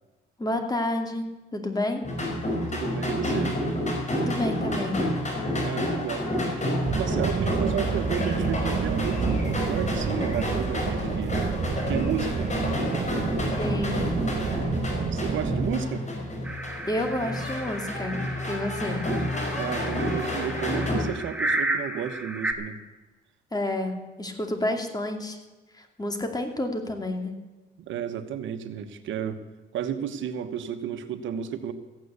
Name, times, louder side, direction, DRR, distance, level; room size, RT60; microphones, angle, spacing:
voice 1, 0.4-2.1 4.1-5.0 13.6-14.0 16.9-18.2 18.5-19.0 23.5-25.4 25.7-27.3, left 1 dB, 20° left, 4 dB, 2.5 m, -30 dB
sound 1, 2.0-21.0, left 1 dB, 35° left, 5.4 m, -29 dB
voice 2, 2.7-3.6 5.6-6.3 6.9-11.4 11.9-12.5 15.1-16.1 19.6-22.8 27.8-29.4 29.7-31.7, right 8 dB, 75° right, 9 dB, 1.2 m, -32 dB
sound 2, 6.9-15.7, right 6 dB, 45° right, 1.1 m, -29 dB
sound 3, 16.4-22.5, right 2 dB, 5° right, 2.0 m, -33 dB
14.5 x 9.3 x 8.2 m, 1.1 s
cardioid pair, 90°, 20 cm